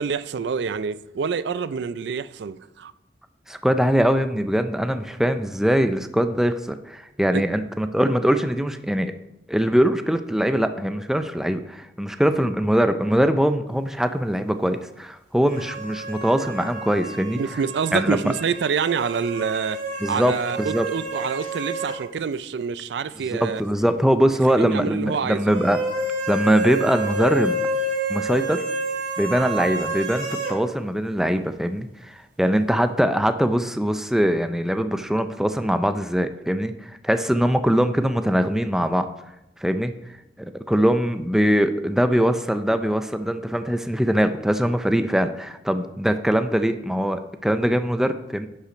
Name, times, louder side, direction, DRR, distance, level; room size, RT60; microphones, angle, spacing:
voice 1, 0.0-2.9 7.3-7.5 17.4-19.8 20.1-23.6 24.6-25.5, right 6 dB, 70° right, 0.4 m, -27 dB
voice 2, 3.5-9.1 9.5-17.4 17.9-18.2 20.0-20.9 23.3-25.8 26.3-27.6 28.1-28.6 29.2-39.1 39.6-39.9 40.4-48.5, equal, 5° right, 0.4 m, -22 dB
sound 1, 15.5-22.0 22.3-22.4 25.5-30.6, right 2 dB, 45° right, 1.8 m, -29 dB
10.0 x 5.7 x 5.0 m
head